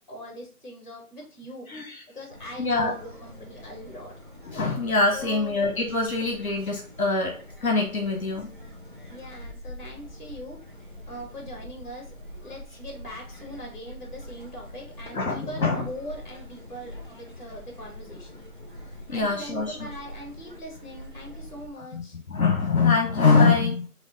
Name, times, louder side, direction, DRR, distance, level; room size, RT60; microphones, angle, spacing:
voice 1, 0.1-1.7 2.1-4.1 5.1-5.5 9.1-10.6 11.1-18.4 19.1-22.2, equal, 30° left, 0 dB, 1.5 m, -41 dB
voice 2, 1.7-2.0 2.6-2.9 4.4-7.3 7.6-8.5 15.1-15.9 19.1-19.9 21.9-23.9, left 4 dB, 65° left, 2 dB, 1.0 m, -24 dB
sound 1, 2.3-21.7, left 1 dB, 35° right, 0.4 m, -44 dB
4.4 x 2.4 x 3.9 m, 0.40 s
figure-of-eight pair, 160°, 45 cm